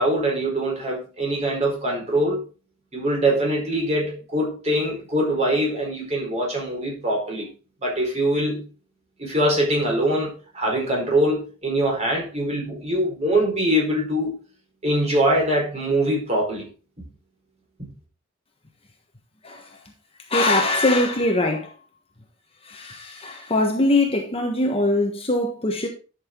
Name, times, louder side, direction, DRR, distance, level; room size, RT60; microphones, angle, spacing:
voice 1, 0.0-2.5 2.9-7.5 7.8-8.6 9.2-14.3 14.8-16.7, right 1 dB, 30° right, 4.8 m, -23 dB
voice 2, 20.3-21.7 22.6-25.9, left 2 dB, 25° left, 1.3 m, -22 dB
11.5 x 6.7 x 3.8 m
head